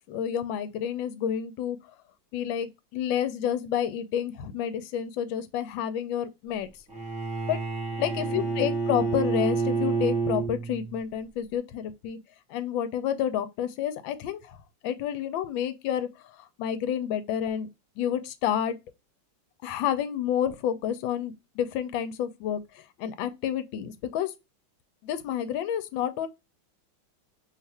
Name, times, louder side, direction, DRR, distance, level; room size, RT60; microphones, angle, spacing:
voice 1, 0.1-1.8 2.3-6.7 7.5-7.6 8.0-12.2 12.5-14.6 14.8-16.1 16.4-17.7 18.0-18.8 19.6-24.3 25.0-26.3, left 9 dB, 85° left, 1.4 m, -29 dB
Bowed string instrument, 6.9-11.0, right 4 dB, 5° right, 0.8 m, -29 dB
3.4 x 2.5 x 4.1 m
omnidirectional pair, 2.1 m